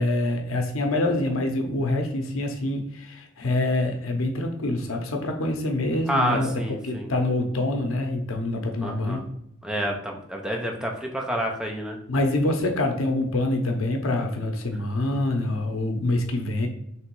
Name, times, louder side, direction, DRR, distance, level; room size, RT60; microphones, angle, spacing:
voice 1, 0.0-6.5 6.8-9.2 12.1-16.7, left 2 dB, 85° left, 4 dB, 0.7 m, -25 dB
voice 2, 6.1-7.1 8.8-9.2 9.6-12.0, equal, 5° right, 0 dB, 0.6 m, -28 dB
3.3 x 3.0 x 4.5 m, 0.75 s
head